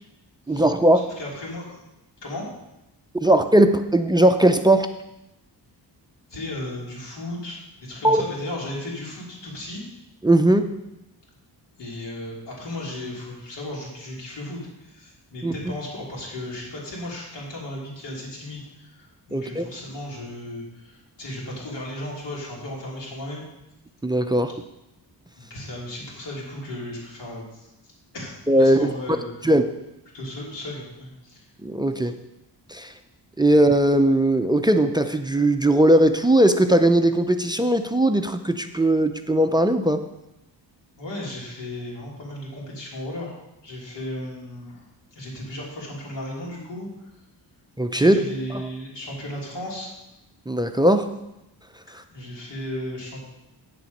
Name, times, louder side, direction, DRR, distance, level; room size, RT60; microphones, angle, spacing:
voice 1, 0.5-1.0 3.1-4.9 8.0-8.2 10.2-10.7 15.4-15.5 19.3-19.6 24.0-24.5 28.5-28.8 29.4-29.6 31.6-32.1 32.7-32.9 33.4-40.0 47.8-48.2 48.5-48.6 50.5-51.1, right 1 dB, 10° right, 8 dB, 0.4 m, -19 dB
voice 2, 1.2-1.8 2.2-2.5 6.3-9.8 11.8-23.4 25.4-27.7 28.1-29.5 30.1-31.4 32.0-32.1 41.0-43.3 43.6-44.8 45.1-46.9 47.9-49.9 52.1-53.2, left 1 dB, 80° left, -4 dB, 3.1 m, -35 dB
9.3 x 7.1 x 5.2 m, 0.92 s
wide cardioid pair, 130°, 42 cm